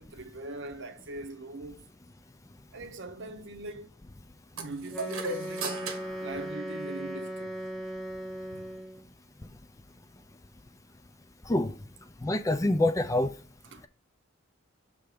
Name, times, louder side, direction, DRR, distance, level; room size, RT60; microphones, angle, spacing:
voice 1, 0.0-1.8 2.7-3.9 4.5-7.6 8.5-8.7 13.7-13.9, right 2 dB, 60° right, 0.8 m, -41 dB
sound 1, 4.6-7.3, right 3 dB, 90° right, 1.2 m, -38 dB
Wind instrument woodwind instrument, 4.9-9.1, equal, ahead, 0.8 m, -38 dB
voice 2, 12.2-13.3, left 1 dB, 15° left, 0.4 m, -25 dB
6.7 x 3.4 x 5.0 m
head